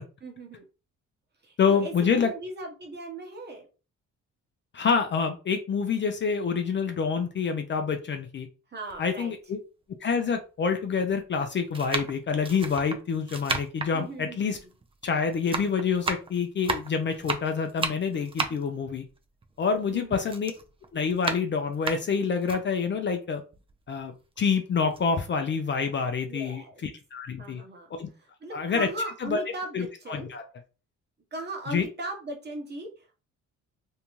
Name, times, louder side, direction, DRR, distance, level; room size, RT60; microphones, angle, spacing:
voice 1, 0.2-0.6 1.4-3.7 8.7-9.3 13.9-14.7 18.4-18.6 19.9-20.2 26.3-26.8 27.4-27.9 28.4-30.3 31.3-33.2, right 1 dB, 35° right, 2 dB, 1.0 m, -38 dB
voice 2, 1.6-2.3 4.7-8.5 9.0-9.6 10.0-14.6 15.0-19.0 19.6-20.5 20.9-23.4 23.9-27.6 28.0-28.1 28.5-28.9 29.2-29.4 29.7-30.4 31.7-31.9, left 5 dB, 40° left, 6 dB, 0.5 m, -27 dB
sound 1, 8.9-9.0 9.9-10.0 10.9-11.2 11.7-15.1 15.3-19.9 20.2-22.6 23.1-23.2 23.5-24.5 24.8-25.0, right 3 dB, 20° right, 0.4 m, -33 dB
2.7 x 2.2 x 3.0 m, 0.33 s
cardioid pair, 90°, 30 cm